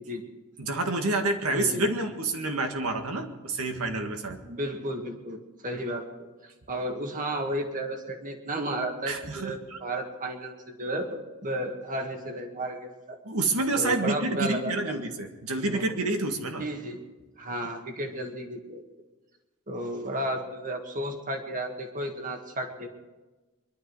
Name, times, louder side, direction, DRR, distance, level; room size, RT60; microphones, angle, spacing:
voice 1, 0.6-4.4 9.1-9.8 13.2-16.6, right 2 dB, 75° right, 5 dB, 1.8 m, -28 dB
voice 2, 1.5-1.9 4.4-6.1 6.4-13.2 13.8-15.0 15.7-15.8 16.6-17.0 17.4-18.8 19.7-22.9, right 1 dB, 35° right, 4 dB, 1.9 m, -33 dB
23.5 x 12.0 x 4.8 m, 1.2 s
head